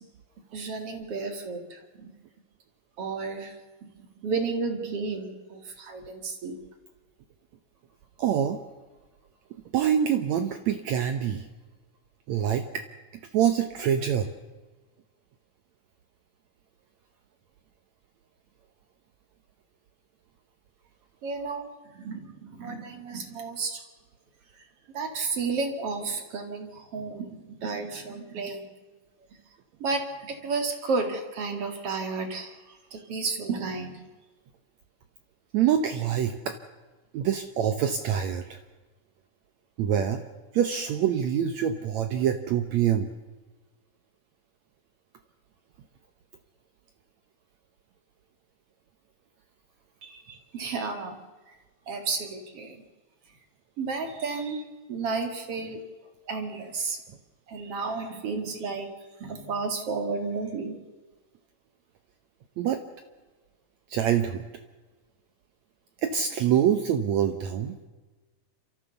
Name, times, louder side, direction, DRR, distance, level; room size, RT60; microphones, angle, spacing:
voice 1, 0.5-2.1 3.0-3.5 3.8-3.9 4.2-6.6 21.2-23.8 24.9-28.7 29.8-34.1 50.0-51.2 51.9-52.8 53.8-54.6 54.9-55.8 56.3-57.0 57.5-58.9 59.2-60.8, right 4 dB, 45° right, 5 dB, 2.7 m, -32 dB
voice 2, 8.2-8.6 9.7-11.5 12.3-12.8 13.3-14.3 35.5-36.6 37.1-38.6 39.8-40.2 40.5-43.1 62.6-62.8 63.9-64.5 66.0-67.8, right 9 dB, 70° right, 8 dB, 1.8 m, -25 dB
29.5 x 13.5 x 6.9 m, 1.3 s
omnidirectional pair, 4.1 m